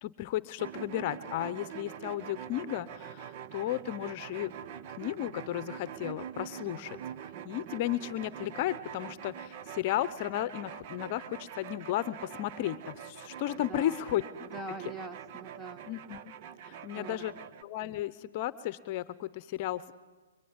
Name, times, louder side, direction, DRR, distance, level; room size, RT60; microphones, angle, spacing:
voice 1, 0.0-4.5 5.0-7.0 7.4-14.2 15.9-16.2 16.6-17.3 17.6-19.9, left 13 dB, 40° left, 15 dB, 0.9 m, -34 dB
sound 1, 0.6-17.6, right 9 dB, 40° right, 1.0 m, -44 dB
voice 2, 13.5-14.0 14.4-15.8 16.9-17.4, right 3 dB, 10° right, 10 dB, 1.5 m, -43 dB
25.0 x 23.5 x 9.8 m, 1.3 s
hypercardioid pair, 145°, 0 cm